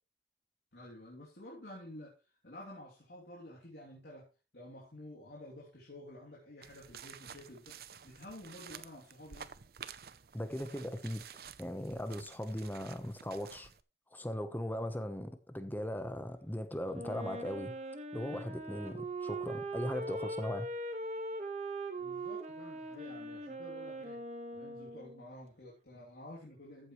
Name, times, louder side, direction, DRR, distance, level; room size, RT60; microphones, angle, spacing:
voice 1, 0.7-2.1 2.4-4.3 4.5-7.8 8.0-9.5 22.0-24.2 24.5-26.9, left 1 dB, 70° left, 3.0 m, -51 dB
sound 1, 6.6-13.8, right 7 dB, 55° right, 0.7 m, -51 dB
voice 2, 10.3-11.2 11.6-13.7 14.1-17.7 18.1-20.7, equal, 10° left, 1.0 m, -38 dB
Wind instrument woodwind instrument, 16.9-25.3, right 2 dB, 40° right, 1.4 m, -41 dB
14.5 x 8.1 x 3.2 m
head